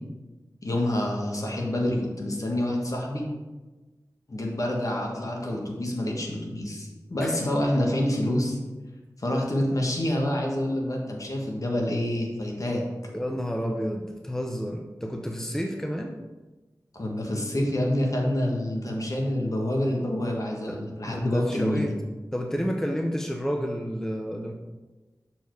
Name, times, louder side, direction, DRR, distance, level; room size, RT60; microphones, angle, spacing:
voice 1, 0.6-3.2 4.3-8.6 9.2-12.8 16.9-21.9, left 1 dB, 55° left, 0 dB, 1.6 m, -27 dB
voice 2, 13.1-16.1 20.7-20.8 21.1-22.0 22.3-24.5, equal, 5° left, 3 dB, 0.7 m, -30 dB
6.9 x 4.6 x 4.6 m, 1.2 s
wide cardioid pair, 60°, 7 cm